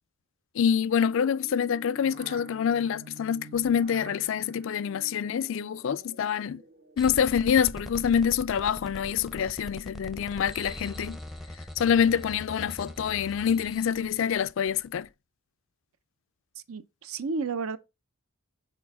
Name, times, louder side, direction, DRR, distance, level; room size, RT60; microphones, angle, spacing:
voice 1, 0.6-6.6 7.0-11.2 11.8-15.1, left 8 dB, 60° left, 0.3 m, -26 dB
sound 1, 1.0-7.4, right 4 dB, 45° right, 0.8 m, -49 dB
sound 2, 7.0-15.1, left 1 dB, ahead, 0.5 m, -42 dB
voice 2, 16.7-17.8, right 4 dB, 70° right, 0.6 m, -32 dB
6.1 x 4.2 x 4.8 m
head